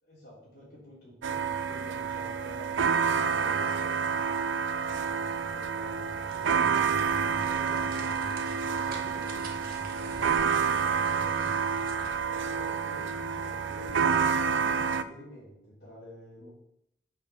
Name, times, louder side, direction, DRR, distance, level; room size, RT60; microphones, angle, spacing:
voice 1, 0.0-11.8 12.1-16.5, equal, 50° left, -9 dB, 3.4 m, -48 dB
sound 1, 1.2-15.0, right 6 dB, 75° right, 0.5 m, -28 dB
sound 2, 6.2-12.3, right 2 dB, 50° right, 1.4 m, -46 dB
7.1 x 5.2 x 6.7 m, 0.78 s
head